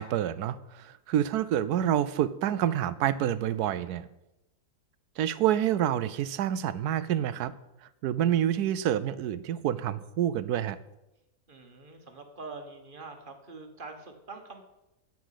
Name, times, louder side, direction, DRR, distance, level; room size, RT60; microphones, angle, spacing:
voice 1, 0.0-4.1 5.2-7.6 7.8-10.8, right 11 dB, 85° right, 16 dB, 1.1 m, -28 dB
voice 2, 11.5-14.6, right 3 dB, 35° right, 5 dB, 1.5 m, -44 dB
9.5 x 7.3 x 8.3 m, 0.95 s
omnidirectional pair, 1.6 m